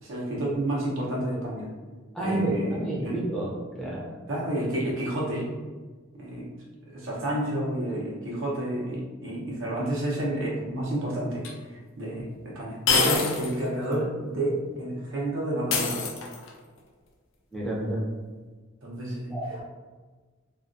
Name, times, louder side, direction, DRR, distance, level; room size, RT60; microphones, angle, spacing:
voice 1, 0.0-1.7 2.2-3.2 4.3-5.5 6.1-6.5 6.8-11.4 11.7-16.0 18.8-19.6, right 1 dB, 70° right, -5 dB, 0.7 m, -30 dB
voice 2, 2.1-3.5 3.8-4.1 17.5-18.0 19.3-19.6, right 1 dB, ahead, -6 dB, 0.5 m, -29 dB
sound 1, 11.4-11.5 12.9-13.6 13.9-14.0 15.7-16.6, left 4 dB, 70° left, 0.4 m, -25 dB
2.3 x 2.2 x 2.5 m, 1.4 s
head